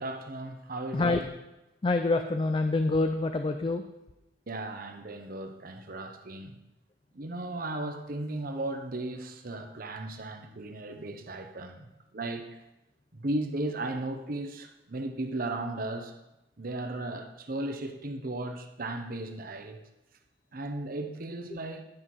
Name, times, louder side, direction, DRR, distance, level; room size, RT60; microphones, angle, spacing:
voice 1, 0.0-1.3 4.5-6.6 7.1-11.8 12.1-12.5 13.1-16.1 16.6-19.8 20.5-21.8, right 2 dB, 55° right, 6 dB, 0.9 m, -36 dB
voice 2, 1.8-3.8, left 3 dB, 30° left, 7 dB, 0.4 m, -26 dB
10.5 x 5.8 x 4.7 m, 0.94 s
head